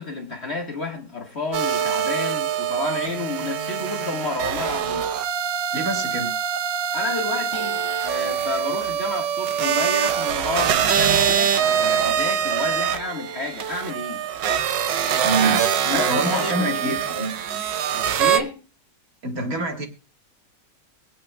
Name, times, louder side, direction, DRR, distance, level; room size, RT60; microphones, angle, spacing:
voice 1, 0.0-5.1 6.9-14.3 15.8-17.0 18.2-18.6, left 3 dB, 35° left, 1.8 m, -30 dB
sound 1, 1.5-18.4, right 8 dB, 80° right, 1.5 m, -24 dB
voice 2, 5.7-6.3 15.2-17.3 19.2-19.9, right 2 dB, 55° right, 2.0 m, -26 dB
23.5 x 8.7 x 2.2 m
omnidirectional pair, 1.9 m